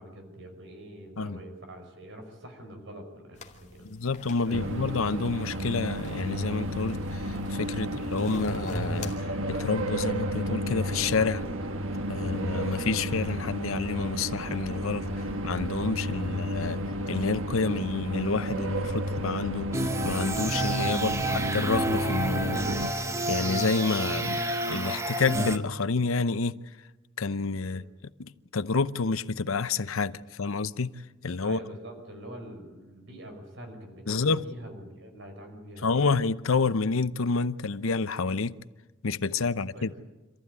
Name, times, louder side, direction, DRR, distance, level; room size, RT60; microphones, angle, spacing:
voice 1, 0.0-3.9 4.3-4.8 16.0-16.4 20.9-21.2 27.6-27.8 31.4-36.1 39.4-39.9, right 1 dB, 60° right, 5.2 m, -45 dB
sound 1, 3.4-9.2, equal, 35° left, 2.5 m, -41 dB
voice 2, 3.8-9.1 9.5-11.4 12.1-15.1 15.4-16.8 17.1-19.7 20.0-23.0 23.3-26.6 27.2-27.8 28.2-31.6 34.1-34.4 35.8-38.6 39.0-39.9, left 4 dB, 80° left, 0.8 m, -29 dB
sound 2, 4.5-22.9, equal, 75° right, 1.5 m, -32 dB
sound 3, 19.7-25.6, right 2 dB, 15° right, 1.0 m, -29 dB
26.5 x 14.5 x 9.6 m
head